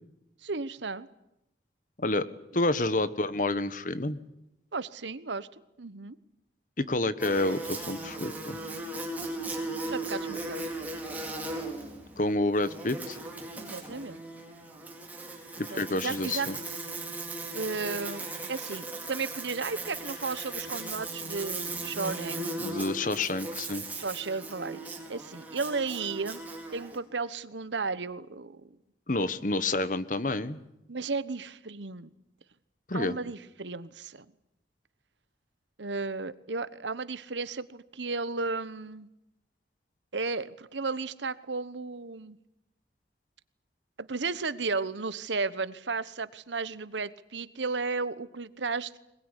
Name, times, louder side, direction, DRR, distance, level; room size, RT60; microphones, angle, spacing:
voice 1, 0.4-1.1 4.7-5.5 5.8-6.2 9.9-10.7 13.5-14.2 15.5-16.5 17.5-22.4 24.0-26.4 26.7-28.8 30.9-32.1 32.9-34.3 35.8-39.1 40.1-42.4 44.0-49.0, right 4 dB, 90° right, 16 dB, 1.1 m, -34 dB
voice 2, 2.5-4.2 6.8-8.6 12.2-13.2 15.6-16.6 22.6-23.8 29.1-30.6 32.9-33.1, left 2 dB, 45° left, 14 dB, 1.3 m, -29 dB
Buzz, 7.2-27.0, right 2 dB, 10° right, 4.2 m, -37 dB
22.0 x 21.0 x 9.9 m, 0.86 s
head